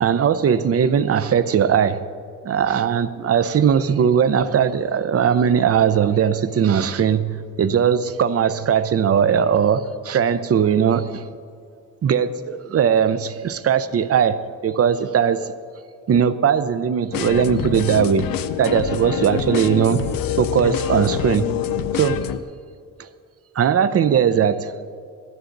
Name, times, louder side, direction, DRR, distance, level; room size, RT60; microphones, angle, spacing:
voice 1, 0.0-2.0 2.4-11.2 12.0-15.5 16.1-18.3 18.6-20.1 20.4-21.5 21.9-22.2 23.0-23.1 23.6-24.7, right 8 dB, 45° right, 13 dB, 0.6 m, -19 dB
sound 1, 17.1-22.4, left 9 dB, 80° left, 0.6 m, -25 dB
15.0 x 13.0 x 3.9 m, 2.2 s
wide cardioid pair, 135°, 34 cm